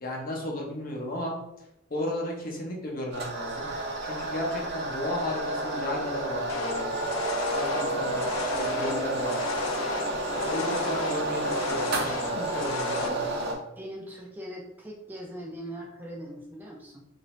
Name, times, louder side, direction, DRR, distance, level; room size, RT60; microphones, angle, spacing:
voice 1, 0.0-1.4 1.9-3.7 4.0-6.9 7.5-9.4 10.3-13.3, left 1 dB, 45° left, -1 dB, 0.7 m, -34 dB
sound 1, 3.1-13.5, right 1 dB, 55° right, 0.6 m, -30 dB
sound 2, 6.5-13.1, left 4 dB, 80° left, 0.4 m, -35 dB
voice 2, 13.8-17.0, equal, 10° right, -1 dB, 0.3 m, -40 dB
3.2 x 2.6 x 3.0 m, 0.85 s
head